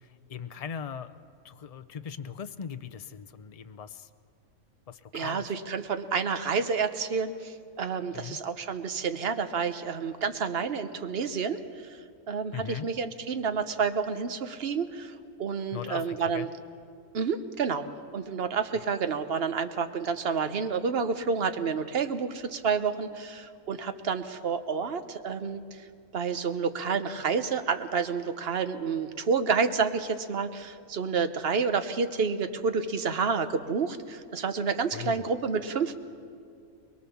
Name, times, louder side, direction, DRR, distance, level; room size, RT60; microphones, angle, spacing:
voice 1, 0.3-1.1 1.4-4.1 4.9-5.5 8.1-8.4 12.5-12.9 15.7-16.5 18.8-18.9 34.9-35.2, left 7 dB, 70° left, 9 dB, 0.3 m, -39 dB
voice 2, 5.1-12.0 12.3-16.5 17.1-17.8 18.1-25.8 26.1-36.0, right 5 dB, 50° right, 9 dB, 1.1 m, -29 dB
22.0 x 22.0 x 7.1 m, 2.4 s
omnidirectional pair, 1.5 m